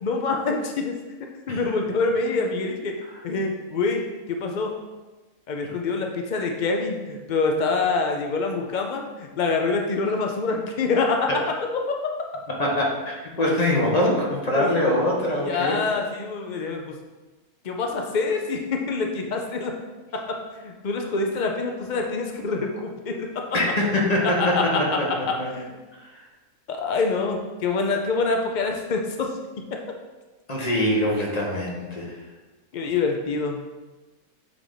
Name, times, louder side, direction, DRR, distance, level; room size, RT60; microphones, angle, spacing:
voice 1, 0.0-1.0 1.5-2.9 3.2-4.8 5.5-11.3 11.9-12.0 14.5-14.7 15.5-17.0 17.6-19.7 20.3-20.4 20.6-23.3 24.4-24.8 25.6-25.7 26.7-29.3 29.7-29.8 32.7-33.6, left 4 dB, 90° left, 2 dB, 0.4 m, -25 dB
voice 2, 12.5-15.8 23.5-25.5 26.1-26.2 30.5-32.1, left 1 dB, 30° left, -2 dB, 1.2 m, -23 dB
8.0 x 3.5 x 4.0 m, 1.2 s
omnidirectional pair, 1.6 m